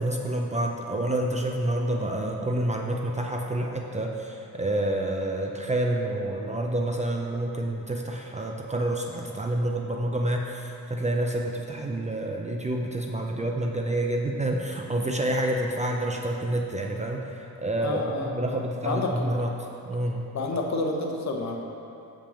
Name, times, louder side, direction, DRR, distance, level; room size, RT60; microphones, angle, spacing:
voice 1, 0.0-19.5 19.8-20.3, right 1 dB, 20° right, 1 dB, 0.5 m, -28 dB
voice 2, 17.8-18.6 18.8-19.3 20.3-21.6, left 2 dB, 50° left, 1 dB, 1.1 m, -29 dB
6.7 x 5.7 x 7.2 m, 2.7 s
cardioid pair, 145°, 35 cm